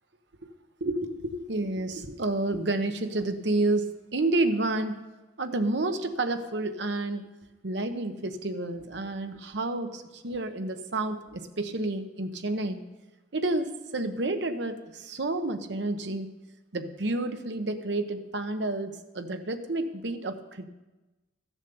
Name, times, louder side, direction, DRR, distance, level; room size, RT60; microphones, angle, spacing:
voice 1, 0.8-5.0 5.4-7.3 7.6-12.8 13.3-16.3 16.7-20.7, right 2 dB, 65° right, 8 dB, 1.0 m, -30 dB
13.5 x 7.3 x 6.9 m, 1.1 s
head